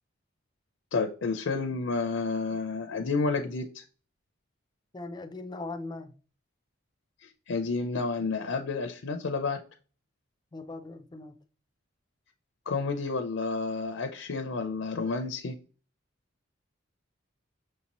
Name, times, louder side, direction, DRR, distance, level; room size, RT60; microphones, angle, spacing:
voice 1, 0.9-3.8 7.2-9.6 12.7-15.5, left 4 dB, 75° left, 0.5 m, -30 dB
voice 2, 4.9-6.1 10.5-11.4, left 2 dB, 20° left, 0.3 m, -40 dB
6.3 x 2.8 x 2.9 m
head